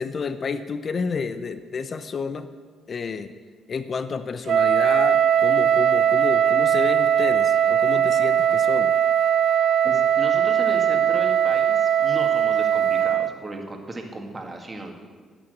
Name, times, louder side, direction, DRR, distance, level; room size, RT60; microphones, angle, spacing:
voice 1, 0.0-2.5 2.9-3.3 3.7-8.9, left 5 dB, 45° left, 11 dB, 0.6 m, -30 dB
Wind instrument woodwind instrument, 4.5-13.4, right 9 dB, 65° right, 0.5 m, -20 dB
voice 2, 9.8-14.9, right 2 dB, 25° right, 3 dB, 1.9 m, -35 dB
12.5 x 6.1 x 7.8 m, 1.5 s
cardioid pair, 90°, 0 cm